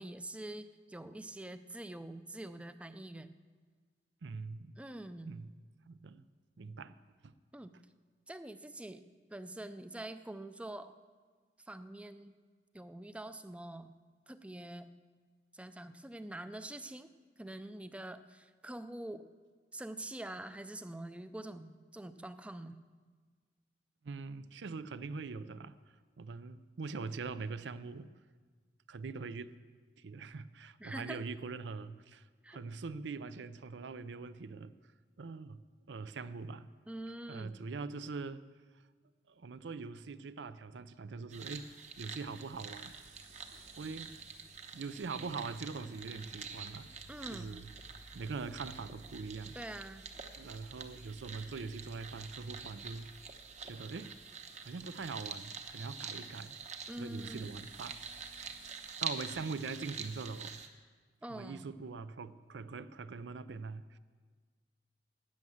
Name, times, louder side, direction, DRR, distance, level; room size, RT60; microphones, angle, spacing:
voice 1, 0.0-3.4 4.8-5.4 7.5-7.7 8.3-9.0 9.3-10.9 11.7-12.4 12.7-13.9 14.3-14.9 15.5-17.1 17.4-19.3 19.7-22.8 30.8-31.2 32.4-32.6 36.9-37.6 47.1-47.6 49.5-50.1 56.9-57.6 61.2-61.7, right 1 dB, 5° right, 12 dB, 0.4 m, -45 dB
voice 2, 4.2-4.8 5.3-5.5 5.9-6.2 6.6-7.0 7.2-7.3 24.0-25.7 26.2-28.1 28.9-29.5 30.0-34.7 35.2-35.6 35.9-36.7 37.3-38.4 39.3-41.7 42.0-43.0 43.5-44.1 44.7-46.9 47.3-47.7 48.1-49.6 50.4-53.1 53.6-54.1 54.6-56.5 57.0-58.0 58.4-58.6 59.0-60.6 61.3-64.0, right 4 dB, 90° right, 15 dB, 0.5 m, -43 dB
sound 1, 40.9-60.2, right 1 dB, 65° right, 3.4 m, -60 dB
sound 2, 41.3-60.7, right 5 dB, 40° right, 0.9 m, -46 dB
12.5 x 9.0 x 7.1 m, 1.5 s
head